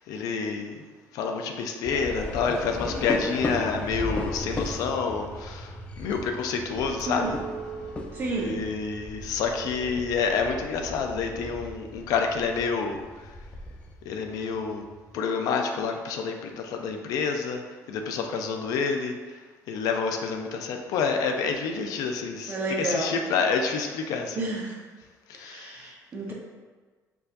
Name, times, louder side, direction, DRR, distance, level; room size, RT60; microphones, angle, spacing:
voice 1, 0.1-0.8 1.1-7.4 8.4-13.0 14.1-14.8 15.1-17.6 17.9-19.1 19.7-24.5 25.3-25.9 26.3-26.4, left 5 dB, 75° left, 4 dB, 0.5 m, -28 dB
sound 1, 1.8-14.0, left 2 dB, 20° left, 0.4 m, -37 dB
sound 2, 3.3-15.2, right 2 dB, 85° right, 1.2 m, -45 dB
Chink clink, 7.0-12.4, right 6 dB, 60° right, 0.4 m, -42 dB
voice 2, 8.1-8.7 22.5-23.2 24.3-24.8 25.4-26.3, right 2 dB, 35° right, -1 dB, 0.8 m, -31 dB
4.6 x 3.9 x 2.5 m, 1.4 s
cardioid pair, 150°, 6 cm